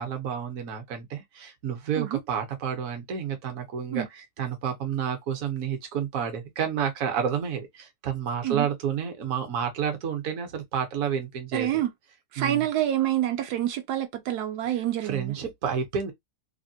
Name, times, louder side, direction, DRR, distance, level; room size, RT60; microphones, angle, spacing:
voice 1, 0.0-11.7 12.4-12.6 15.0-16.1, right 8 dB, 65° right, 1.2 m, -30 dB
voice 2, 11.5-11.9 12.3-15.3, right 12 dB, 85° right, 1.2 m, -27 dB
3.4 x 2.2 x 2.6 m
omnidirectional pair, 1.7 m